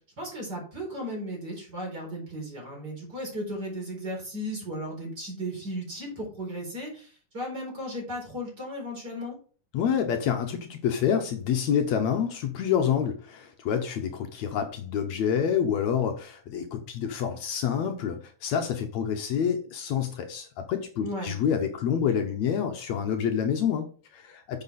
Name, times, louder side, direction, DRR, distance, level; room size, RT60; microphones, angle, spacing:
voice 1, 0.2-9.4 21.0-21.3, equal, 30° right, -1 dB, 4.8 m, -35 dB
voice 2, 9.7-24.6, left 8 dB, 70° left, 5 dB, 2.1 m, -27 dB
9.4 x 6.5 x 4.1 m, 0.41 s
omnidirectional pair, 3.4 m